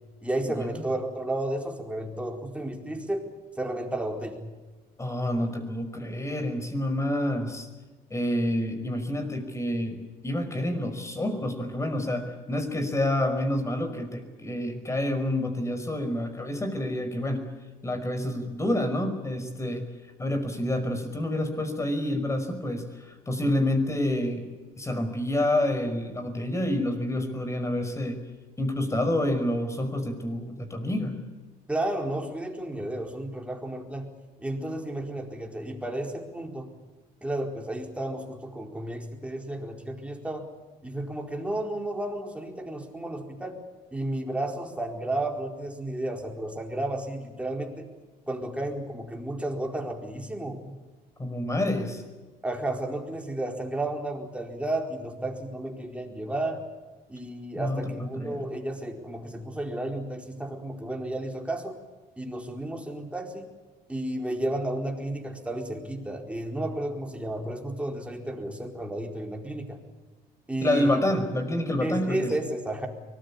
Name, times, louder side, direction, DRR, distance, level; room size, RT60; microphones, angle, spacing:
voice 1, 0.2-3.3 3.6-4.4 31.7-34.1 34.4-36.7 37.2-40.5 40.8-43.6 43.9-47.9 48.3-50.7 52.4-56.6 57.1-61.8 62.2-63.5 63.9-69.8 70.5-71.0 71.8-72.9, right 1 dB, 5° right, 2 dB, 4.4 m, -32 dB
voice 2, 5.0-7.7 8.1-17.5 17.8-19.9 20.2-24.5 24.8-28.2 28.6-31.2 51.2-52.0 57.6-58.4 70.6-72.3, left 1 dB, 15° left, 8 dB, 5.3 m, -28 dB
24.0 x 20.0 x 8.5 m, 1.3 s
cardioid pair, 110°, 17 cm